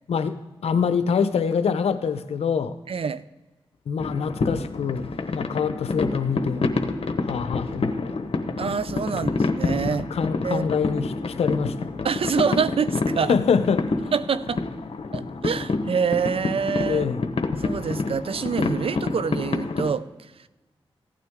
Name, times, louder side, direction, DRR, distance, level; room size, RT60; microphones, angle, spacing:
voice 1, 0.1-2.8 3.9-6.6 7.2-8.2 10.1-11.9 13.2-13.9 16.9-17.2, left 6 dB, 90° left, 11 dB, 0.6 m, -25 dB
voice 2, 2.9-3.2 8.6-10.1 10.4-10.7 12.0-13.4 14.1-14.6 15.1-17.1 17.6-20.1, right 6 dB, 65° right, 15 dB, 0.5 m, -26 dB
sound 1, 4.0-19.9, left 3 dB, 70° left, 0.9 m, -28 dB
15.5 x 9.1 x 3.6 m, 1.2 s
cardioid pair, 45°, 10 cm